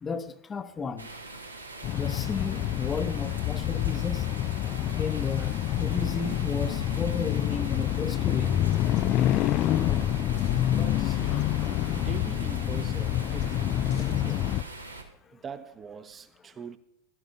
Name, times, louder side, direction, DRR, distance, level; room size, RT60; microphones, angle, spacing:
voice 1, 0.0-1.1 2.0-4.2 5.0-8.5, left 4 dB, 20° left, 0.8 m, -34 dB
sound 1, 1.0-15.0, right 2 dB, 85° right, 1.4 m, -42 dB
sound 2, 1.8-14.6, left 13 dB, 35° left, 0.3 m, -27 dB
voice 2, 9.7-10.3 10.7-11.7 11.9-14.6 15.3-16.8, right 6 dB, 20° right, 0.8 m, -43 dB
17.0 x 12.0 x 2.6 m
figure-of-eight pair, 90°, 0 cm